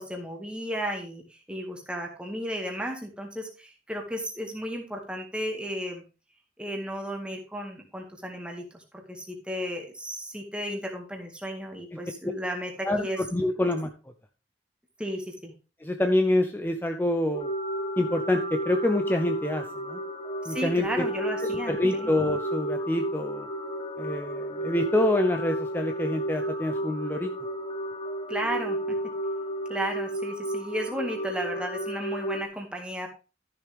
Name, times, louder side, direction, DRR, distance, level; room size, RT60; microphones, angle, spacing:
voice 1, 0.0-6.0 6.6-13.2 13.6-13.7 15.0-15.5 20.4-22.1 28.3-29.0 29.7-33.1, equal, 5° right, 1 dB, 1.9 m, -34 dB
voice 2, 12.8-13.9 15.8-17.5 18.0-20.0 20.5-21.0 21.4-23.5 24.0-27.3, left 1 dB, 10° left, 6 dB, 0.6 m, -26 dB
sound 1, 17.3-32.4, right 1 dB, 30° left, 1.0 m, -32 dB
13.0 x 6.8 x 3.4 m, 0.32 s
head